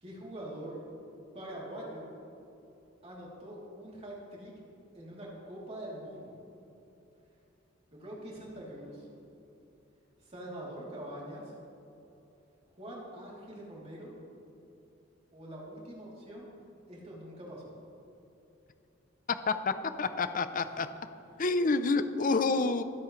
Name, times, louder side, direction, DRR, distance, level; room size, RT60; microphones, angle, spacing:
voice 1, 0.0-0.8 1.3-2.1 3.0-4.5 4.9-6.4 7.9-9.1 10.2-11.5 12.7-14.1 15.3-16.5 16.9-17.7, right 1 dB, 30° right, -5 dB, 3.1 m, -44 dB
voice 2, 20.0-20.9 21.4-22.8, left 3 dB, 40° left, 11 dB, 0.6 m, -28 dB
26.0 x 8.7 x 3.2 m, 2.9 s
head